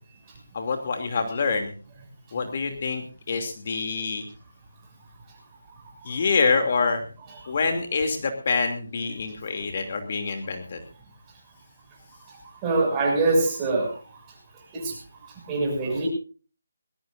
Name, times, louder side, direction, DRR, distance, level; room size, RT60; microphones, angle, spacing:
voice 1, 0.5-1.7 2.3-4.2 6.0-7.0 7.5-10.8, left 4 dB, 40° left, 6 dB, 2.8 m, -26 dB
voice 2, 12.6-13.9 14.7-14.9 15.5-16.1, right 3 dB, 15° right, 0 dB, 6.6 m, -23 dB
20.5 x 19.0 x 2.6 m, 0.37 s
figure-of-eight pair, 165°, 0 cm